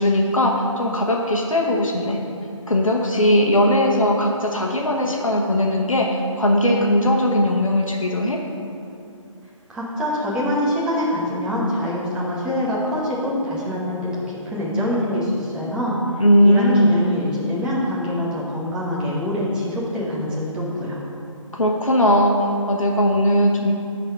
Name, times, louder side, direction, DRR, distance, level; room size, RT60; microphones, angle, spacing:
voice 1, 0.0-2.2 2.7-8.4 16.2-17.1 21.5-23.7, left 1 dB, 75° left, 0 dB, 1.2 m, -19 dB
voice 2, 9.7-16.0 16.4-21.0, left 1 dB, 5° right, -7 dB, 1.1 m, -24 dB
10.5 x 4.1 x 5.9 m, 2.6 s
figure-of-eight pair, 145°, 17 cm